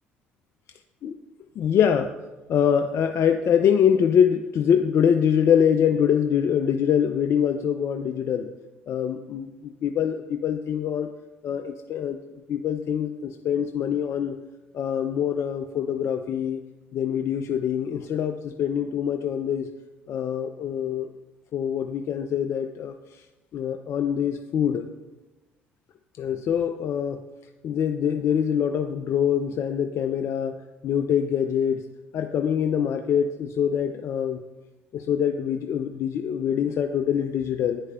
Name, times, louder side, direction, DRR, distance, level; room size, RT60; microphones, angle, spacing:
voice 1, 1.6-2.1 2.5-8.5 8.9-11.1 11.4-12.2 12.5-14.4 14.7-16.6 16.9-19.7 20.1-21.1 21.5-23.0 23.5-24.9 26.2-27.2 27.6-30.6 30.8-31.8 32.1-34.4 34.9-37.8, left 8 dB, 50° left, 7 dB, 0.3 m, -24 dB
9.5 x 4.7 x 2.2 m, 1.1 s
hypercardioid pair, 55°, 6 cm